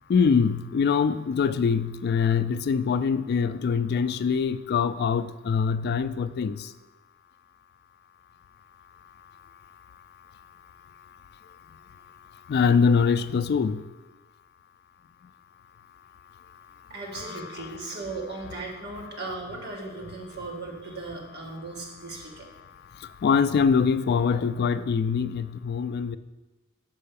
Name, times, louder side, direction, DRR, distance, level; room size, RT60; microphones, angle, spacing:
voice 1, 0.1-6.7 12.5-13.8 17.2-17.7 23.2-26.2, left 6 dB, 50° left, 13 dB, 0.3 m, -24 dB
voice 2, 16.9-22.5, right 3 dB, 55° right, -2 dB, 1.8 m, -37 dB
5.5 x 5.5 x 6.8 m, 1.1 s
head